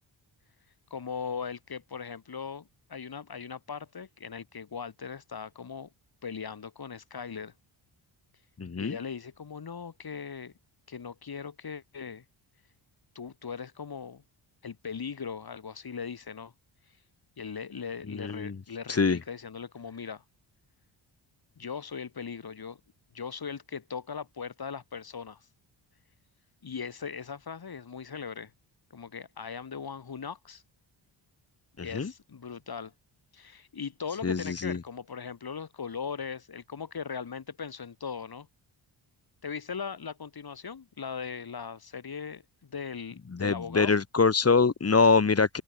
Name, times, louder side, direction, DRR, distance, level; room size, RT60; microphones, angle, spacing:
voice 1, 0.9-5.9 6.2-7.5 8.7-10.5 10.9-12.2 13.2-14.2 14.6-16.5 17.4-20.2 21.6-22.8 23.1-25.4 26.6-28.5 28.9-30.6 31.8-32.9 33.3-38.5 39.4-43.9, left 6 dB, 50° left, 5.4 m, -39 dB
voice 2, 8.6-9.0 18.2-18.5 18.9-19.2 31.8-32.1 34.2-34.8 43.3-45.6, left 4 dB, 30° left, 1.9 m, -24 dB
open air
cardioid pair, 90°, 48 cm